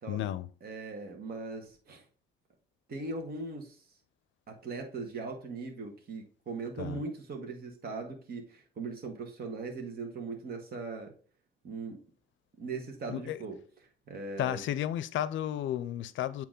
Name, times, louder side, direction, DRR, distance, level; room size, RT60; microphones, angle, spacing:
voice 1, 0.1-0.5 6.8-7.0 13.1-13.4 14.4-16.4, left 11 dB, 75° left, 0.5 m, -33 dB
voice 2, 0.6-2.0 2.9-3.8 4.5-11.1 11.6-12.0 12.6-13.6 14.1-14.6, right 3 dB, 50° right, 1.4 m, -39 dB
8.6 x 3.0 x 3.8 m
cardioid pair, 90°, 20 cm